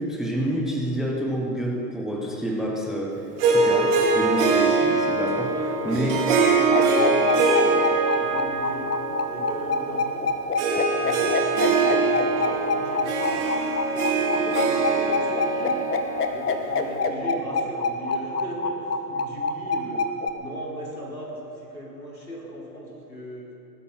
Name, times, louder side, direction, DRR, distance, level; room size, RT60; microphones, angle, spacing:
voice 1, 0.0-5.5 5.8-6.2, equal, ahead, 0 dB, 0.5 m, -28 dB
Harp, 3.4-17.0, right 3 dB, 40° right, 3.1 m, -23 dB
voice 2, 5.5-7.9 8.1-8.9 9.3-10.3 10.9-13.5 13.9-15.8 16.3-20.1 20.4-23.5, equal, 90° left, -4 dB, 4.5 m, -37 dB
sound 1, 6.7-20.3, left 4 dB, 65° left, 1.6 m, -26 dB
19.0 x 12.0 x 5.6 m, 2.8 s
figure-of-eight pair, 110°, 50 cm